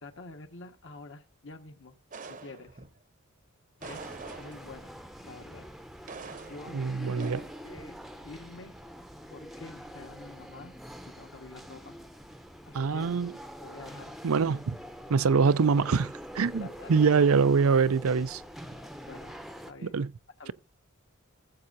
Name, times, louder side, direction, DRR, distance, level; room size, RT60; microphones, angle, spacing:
voice 1, 0.0-2.0 2.3-2.8 3.8-4.9 5.2-5.7 6.5-6.8 7.6-8.7 9.3-10.8 11.0-12.0 12.7-13.1 13.6-14.1 16.6-17.0 19.1-20.0 20.4-20.5, left 2 dB, 60° left, 1.6 m, -47 dB
sound 1, 2.1-3.0 3.8-4.9 6.1-6.8 7.2-7.6, right 4 dB, 40° right, 0.8 m, -45 dB
sound 2, 3.8-19.7, equal, ahead, 0.7 m, -45 dB
voice 2, 6.7-7.5 12.7-13.3 14.2-14.8 15.1-18.4 19.8-20.1, right 5 dB, 85° right, 0.5 m, -24 dB
17.0 x 7.6 x 2.7 m
head